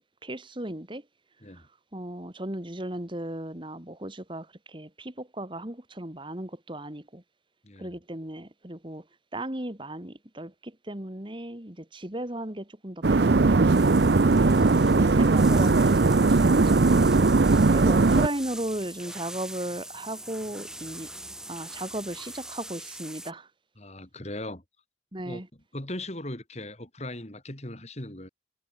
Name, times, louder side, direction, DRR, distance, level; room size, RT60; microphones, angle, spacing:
voice 1, 0.2-1.1 1.5-1.7 1.9-7.2 7.8-9.1 9.3-13.8 14.9-17.0 17.7-21.1 21.5-23.5 25.1-25.5, right 1 dB, 25° right, 2.0 m, -36 dB
voice 2, 7.6-7.9 17.4-17.7 23.8-24.6 25.2-25.4 25.7-28.3, left 1 dB, 35° left, 3.7 m, -39 dB
sound 1, 13.0-18.3, right 3 dB, 65° right, 0.6 m, -19 dB
sound 2, 13.7-23.3, right 1 dB, 5° right, 5.5 m, -42 dB
head